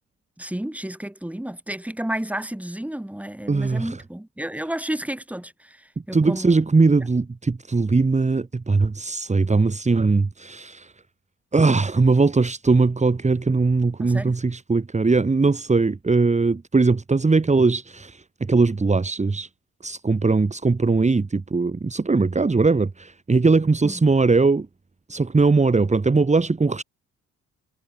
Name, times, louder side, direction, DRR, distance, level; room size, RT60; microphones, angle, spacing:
voice 1, 0.4-6.6 14.0-14.4 23.8-24.0, right 1 dB, 5° right, 5.6 m, -31 dB
voice 2, 3.5-4.0 6.1-10.9 11.5-19.5 19.8-24.7 25.1-26.8, right 3 dB, 25° right, 3.2 m, -20 dB
cardioid pair, 90°, 30 cm